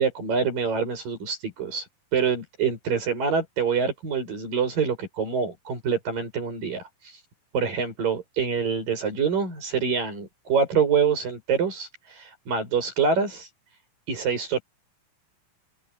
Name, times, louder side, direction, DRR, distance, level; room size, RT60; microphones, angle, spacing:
voice 1, 0.0-1.9 2.1-7.2 7.5-13.5 14.1-14.6, right 6 dB, 85° right, 9.0 m, -26 dB
open air
omnidirectional pair, 3.8 m